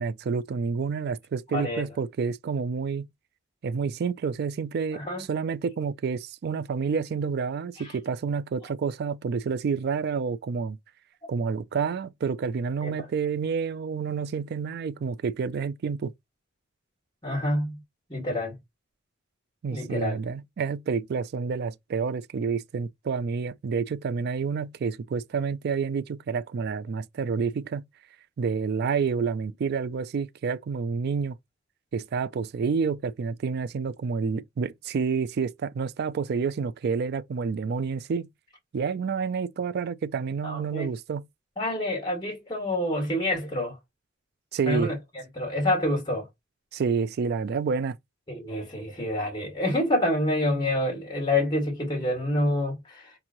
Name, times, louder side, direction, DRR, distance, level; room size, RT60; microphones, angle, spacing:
voice 1, 0.0-3.1 3.6-10.8 11.3-16.1 19.6-27.8 28.4-31.4 31.9-38.3 38.7-41.3 44.5-44.9 46.7-48.0, right 5 dB, 55° right, 0.3 m, -29 dB
voice 2, 1.5-1.9 4.9-5.3 7.8-7.9 12.8-12.9 17.2-17.8 18.1-18.6 19.7-20.2 40.4-40.9 41.6-43.8 44.7-45.0 45.4-46.3 48.3-53.1, left 1 dB, 20° left, 1.8 m, -27 dB
4.5 x 3.0 x 2.6 m
head